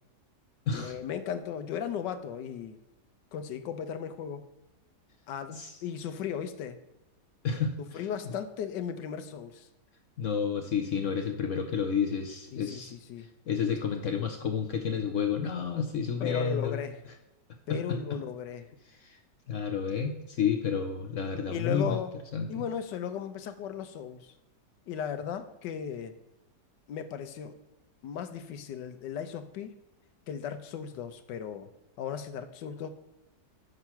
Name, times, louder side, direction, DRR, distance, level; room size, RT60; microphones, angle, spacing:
voice 1, 0.7-2.8 3.3-4.5 5.3-6.8 7.8-9.7 12.5-13.3 16.2-17.0 17.7-18.7 21.5-22.2 22.5-24.3 24.9-26.1 26.9-27.6 28.0-29.8 30.3-31.7 32.0-32.9, left 8 dB, 80° left, 9 dB, 1.4 m, -36 dB
voice 2, 7.4-8.0 10.2-12.9 13.5-16.8 17.9-18.0 19.0-19.2 19.5-22.0 22.3-22.6, left 6 dB, 65° left, 4 dB, 0.8 m, -30 dB
6.4 x 6.0 x 5.8 m, 0.96 s
omnidirectional pair, 1.9 m